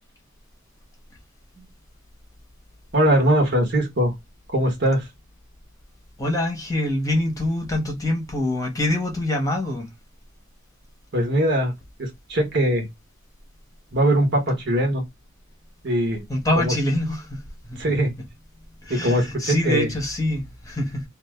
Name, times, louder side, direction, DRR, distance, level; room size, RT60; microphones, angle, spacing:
voice 1, 2.9-4.1 4.5-5.1 11.1-11.7 12.0-12.9 13.9-15.0 15.8-16.3 16.5-16.7 17.8-18.1 18.9-19.9, right 1 dB, 55° right, 1.1 m, -21 dB
voice 2, 6.2-9.9 16.3-17.8 18.8-21.0, left 1 dB, 15° left, 0.9 m, -25 dB
2.6 x 2.5 x 3.2 m
head